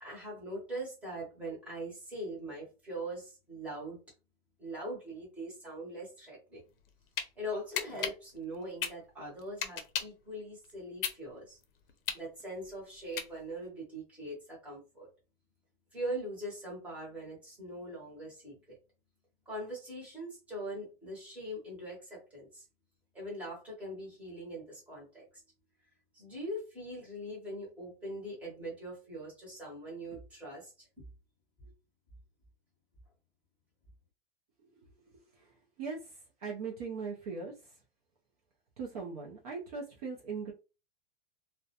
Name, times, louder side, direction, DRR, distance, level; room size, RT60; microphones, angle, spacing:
voice 1, 0.0-4.0 4.6-6.6 7.4-11.6 12.1-15.1 15.9-18.8 19.5-22.6 23.1-25.3 26.1-30.9 31.6-31.7, right 1 dB, 5° right, -5 dB, 0.8 m, -42 dB
sound 1, 6.7-7.3 7.7-10.2 10.6-13.7, left 8 dB, 70° left, 0.5 m, -36 dB
voice 2, 35.8-37.5 38.8-40.5, right 5 dB, 40° right, -1 dB, 0.5 m, -39 dB
2.3 x 2.1 x 2.7 m, 0.30 s
supercardioid pair, 170°, 30 cm